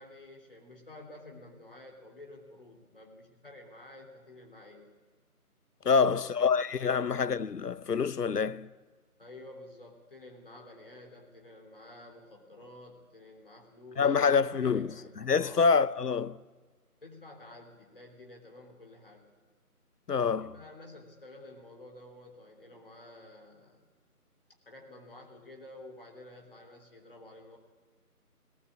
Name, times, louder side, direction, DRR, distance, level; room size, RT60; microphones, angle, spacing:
voice 1, 0.0-4.9 5.8-6.3 9.2-15.7 17.0-19.3 20.4-23.8 24.7-27.6, left 2 dB, 35° left, 3.4 m, -51 dB
voice 2, 5.9-8.7 14.0-14.9 15.2-16.4 20.1-20.5, left 5 dB, 85° left, 0.9 m, -26 dB
18.5 x 18.5 x 8.6 m
figure-of-eight pair, 175°, 46 cm